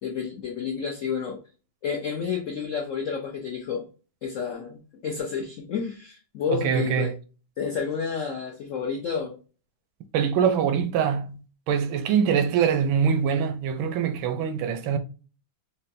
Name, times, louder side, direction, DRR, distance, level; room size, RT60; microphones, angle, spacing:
voice 1, 0.0-1.4 1.8-3.9 4.2-7.1 7.6-9.4, left 6 dB, 90° left, 0.6 m, -30 dB
voice 2, 6.5-7.1 10.1-15.0, right 7 dB, 85° right, 1.4 m, -24 dB
5.4 x 2.2 x 2.6 m
omnidirectional pair, 2.1 m